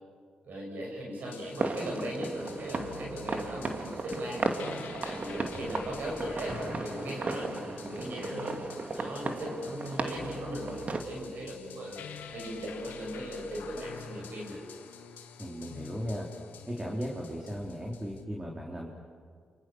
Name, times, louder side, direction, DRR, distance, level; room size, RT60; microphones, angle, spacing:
voice 1, 0.4-4.4 4.9-8.5 8.9-12.0 12.3-14.6, equal, 70° right, -2 dB, 7.1 m, -38 dB
sound 1, 1.2-18.2, left 7 dB, 80° left, 1.8 m, -48 dB
sound 2, 1.6-11.0, right 3 dB, 50° right, 2.3 m, -35 dB
voice 2, 15.4-16.3 16.7-18.9, equal, 25° right, -1 dB, 4.1 m, -36 dB
29.5 x 27.0 x 6.5 m, 2.1 s
supercardioid pair, 45°, 3 cm